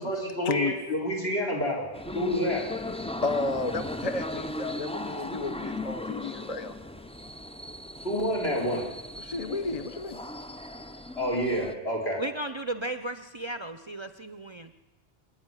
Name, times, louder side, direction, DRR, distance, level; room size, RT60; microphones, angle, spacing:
voice 1, 0.0-1.9 2.1-2.7 8.0-8.8 11.1-12.2, equal, 75° left, 0 dB, 4.7 m, -28 dB
sound 1, 1.9-11.8, left 1 dB, 10° left, 0.4 m, -37 dB
voice 2, 3.2-6.8 9.2-10.2, left 3 dB, 40° left, 9 dB, 0.8 m, -32 dB
voice 3, 12.2-14.7, right 2 dB, 30° right, 10 dB, 0.6 m, -35 dB
25.5 x 10.5 x 9.8 m, 1.2 s
omnidirectional pair, 1.1 m